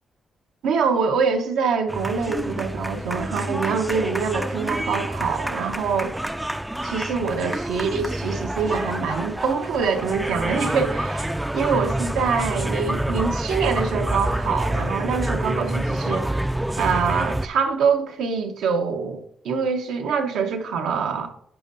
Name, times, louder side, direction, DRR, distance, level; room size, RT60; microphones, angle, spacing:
voice 1, 0.6-6.1 6.8-16.4 16.8-21.3, right 5 dB, 90° right, 0.8 m, -25 dB
sound 1, 1.9-17.5, right 1 dB, 10° right, 0.3 m, -27 dB
10.5 x 5.3 x 2.6 m
cardioid pair, 80°, 0 cm